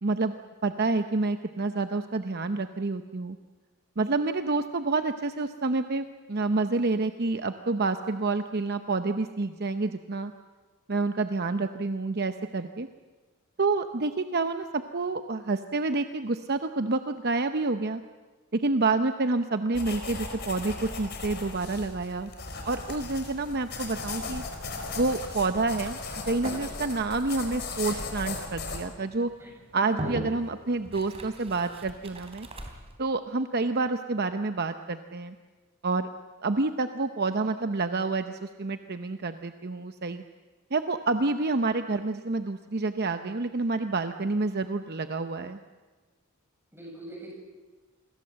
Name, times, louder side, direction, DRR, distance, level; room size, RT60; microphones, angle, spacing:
voice 1, 0.0-3.4 4.0-10.3 10.9-12.9 13.6-18.0 18.5-22.3 22.6-24.4 25.0-26.0 26.3-29.3 29.7-32.5 33.0-35.4 35.8-36.1 36.4-40.2 40.7-45.6, right 3 dB, 45° right, 8 dB, 0.8 m, -28 dB
sound 1, 19.7-28.8, left 3 dB, 50° left, 4.1 m, -37 dB
sound 2, 23.2-33.0, right 1 dB, 25° right, 3.3 m, -43 dB
voice 2, 29.8-30.1 46.7-47.3, right 1 dB, 10° right, -1 dB, 7.4 m, -43 dB
28.0 x 21.5 x 7.6 m, 1.3 s
head